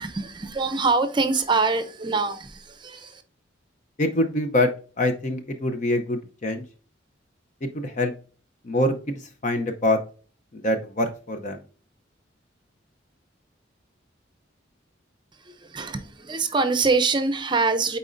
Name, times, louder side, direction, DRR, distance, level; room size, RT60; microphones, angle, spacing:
voice 1, 0.0-3.2 15.4-18.0, right 4 dB, 25° right, 0.6 m, -24 dB
voice 2, 4.0-4.7 5.0-6.6 7.6-8.1 8.6-9.1 9.4-10.0 10.5-11.6, left 1 dB, 40° left, 0.7 m, -24 dB
8.8 x 4.2 x 2.6 m
head